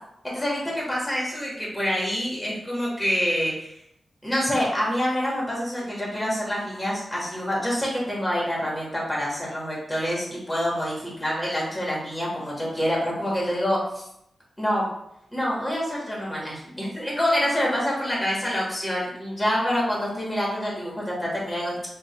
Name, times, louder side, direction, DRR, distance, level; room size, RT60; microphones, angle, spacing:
voice 1, 0.2-3.7 4.2-14.0 14.6-14.9 15.3-21.8, equal, 10° left, -4 dB, 1.4 m, -26 dB
5.3 x 2.5 x 3.0 m, 0.77 s
wide cardioid pair, 135°, 0 cm